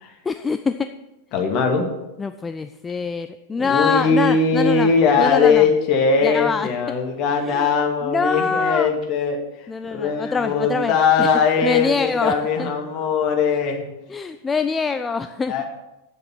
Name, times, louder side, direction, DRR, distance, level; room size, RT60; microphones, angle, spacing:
voice 1, 0.3-0.9 2.2-4.9 5.2-5.7 6.2-6.7 7.4-7.7 8.0-8.9 9.7-11.3 11.6-12.3 12.6-12.7 14.1-15.5, left 5 dB, 15° left, 10 dB, 0.4 m, -24 dB
voice 2, 1.3-1.9 3.6-9.4 9.9-13.8 15.5-15.6, left 5 dB, 40° left, 2 dB, 2.2 m, -20 dB
9.8 x 7.8 x 5.9 m, 0.94 s
figure-of-eight pair, 90°, 0 cm